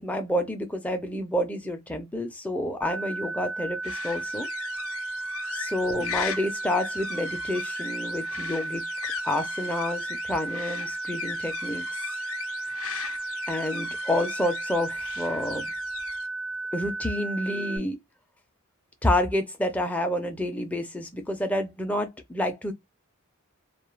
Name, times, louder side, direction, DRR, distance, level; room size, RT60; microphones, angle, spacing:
voice 1, 0.0-4.5 5.5-8.8 9.2-11.8 13.5-15.7 16.7-18.0 19.0-22.7, left 1 dB, 5° left, 0.4 m, -29 dB
sound 1, 2.8-17.8, right 3 dB, 60° right, 0.5 m, -34 dB
sound 2, 3.8-16.3, left 10 dB, 70° left, 0.4 m, -39 dB
2.3 x 2.2 x 3.1 m
head